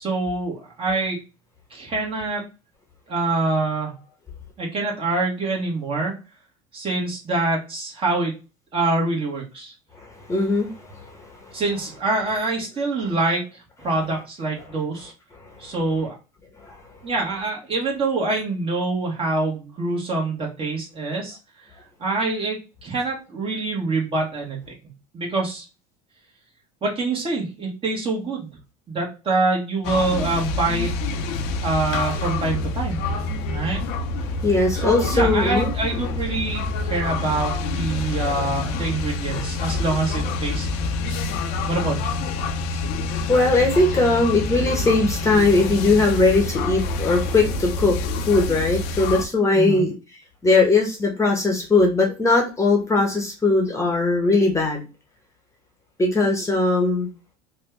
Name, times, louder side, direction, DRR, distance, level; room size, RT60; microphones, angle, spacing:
voice 1, 0.0-1.2 1.7-2.4 3.1-3.9 4.6-6.1 6.7-8.3 8.7-9.7 11.5-13.4 13.8-15.1 15.6-16.2 17.0-21.4 22.0-24.6 25.1-25.6 26.8-28.5 28.9-30.9 31.6-33.0 33.5-33.8 34.8-41.2 41.7-42.2 49.5-49.8, right 3 dB, 30° right, -1 dB, 1.4 m, -25 dB
voice 2, 10.0-11.1 16.6-16.8 34.4-35.7 43.3-48.0 48.3-49.9 50.4-54.9 56.0-57.1, left 3 dB, 15° left, 1 dB, 1.0 m, -20 dB
sound 1, 29.8-49.3, left 3 dB, 65° left, 0.6 m, -27 dB
3.3 x 2.3 x 3.2 m, 0.30 s
supercardioid pair, 95°, 19 cm